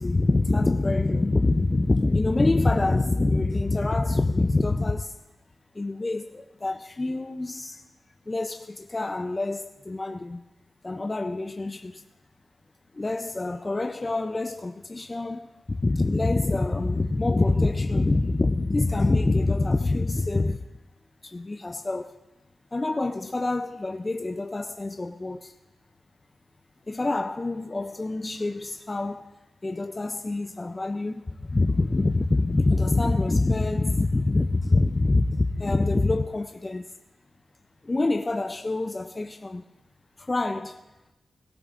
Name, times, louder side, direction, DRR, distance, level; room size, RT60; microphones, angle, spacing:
voice 1, 0.0-5.2 5.8-7.8 8.3-10.4 10.8-12.0 12.9-20.6 21.2-22.2 22.7-25.5 26.9-29.3 29.6-36.9 37.8-39.6 40.2-40.8, left 2 dB, 25° left, 0.4 m, -25 dB
18.5 x 17.0 x 2.5 m
wide cardioid pair, 105°, 0 cm